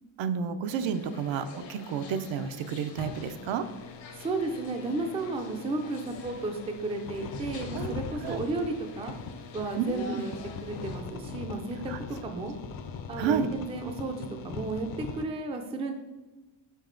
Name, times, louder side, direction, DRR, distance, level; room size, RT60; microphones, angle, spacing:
voice 1, 0.2-3.7 7.7-7.9 8.2-8.4 9.8-10.2 11.9-12.0 13.2-13.5, right 7 dB, 75° right, 10 dB, 0.6 m, -30 dB
sound 1, 0.7-11.0, left 3 dB, 70° left, 1.0 m, -48 dB
sound 2, 2.9-15.2, left 5 dB, 45° left, 0.5 m, -41 dB
voice 2, 4.2-9.1 9.5-10.3 10.6-11.9 12.2-12.5 13.1-15.9, right 3 dB, 15° right, 5 dB, 0.3 m, -33 dB
5.4 x 4.8 x 3.8 m, 1.1 s
cardioid pair, 170°, 46 cm